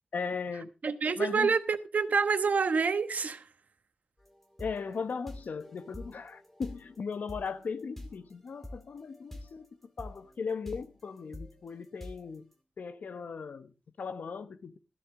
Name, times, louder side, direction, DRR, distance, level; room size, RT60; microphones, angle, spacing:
voice 1, 0.1-0.7 1.2-1.5 4.6-9.7 10.0-12.5 12.8-14.8, left 5 dB, 90° left, 0.9 m, -38 dB
voice 2, 0.8-3.5, right 5 dB, 70° right, 1.1 m, -27 dB
sound 1, 4.2-9.7 10.0-12.4, left 1 dB, 10° left, 2.4 m, -47 dB
13.5 x 12.5 x 3.7 m
wide cardioid pair, 95°, 3 cm